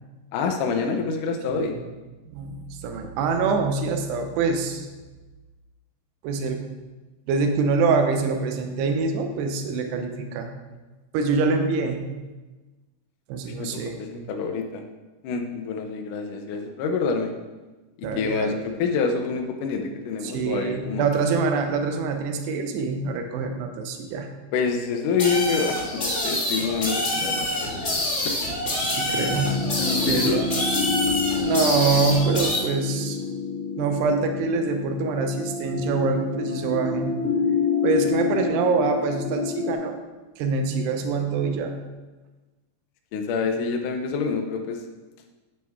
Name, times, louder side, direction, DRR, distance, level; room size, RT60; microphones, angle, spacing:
voice 1, 0.3-1.7 13.6-13.7 14.0-14.8 15.2-17.3 18.2-18.5 18.8-21.1 24.5-27.5 27.8-28.4 29.8-30.4 43.1-44.8, left 5 dB, 80° left, 4 dB, 1.8 m, -27 dB
voice 2, 1.5-1.8 2.3-4.9 6.2-6.6 7.3-10.5 11.1-12.1 13.3-14.0 18.0-18.7 20.2-24.3 28.8-29.6 30.1-30.4 31.4-33.2 33.8-37.1 37.8-40.0 40.4-41.8, right 4 dB, 75° right, 5 dB, 2.9 m, -25 dB
sound 1, 25.2-32.6, left 1 dB, 60° left, 0.7 m, -26 dB
sound 2, 29.2-39.7, left 5 dB, 40° left, 2.7 m, -28 dB
9.5 x 8.7 x 3.6 m, 1.2 s
omnidirectional pair, 5.0 m